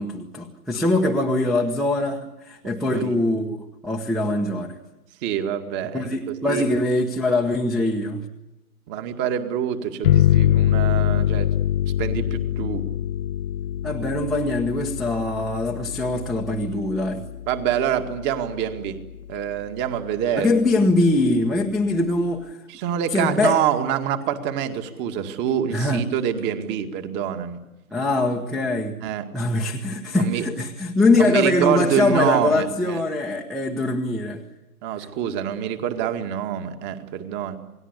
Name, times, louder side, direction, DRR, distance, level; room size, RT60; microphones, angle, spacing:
voice 1, 0.0-3.6 3.8-4.8 5.9-8.2 13.8-17.2 20.3-22.6 23.1-23.6 25.7-26.0 27.9-29.0 29.3-34.4, left 2 dB, ahead, -2 dB, 1.1 m, -22 dB
voice 2, 5.2-6.8 8.9-11.5 12.0-12.8 17.5-19.0 19.3-20.6 22.7-27.6 29.0-29.3 30.2-30.5 31.2-33.0 34.8-37.6, right 9 dB, 25° right, 8 dB, 2.1 m, -26 dB
sound 1, 10.0-19.3, left 12 dB, 40° left, 0.8 m, -24 dB
28.5 x 19.5 x 8.3 m, 1.0 s
hypercardioid pair, 135°, 45 cm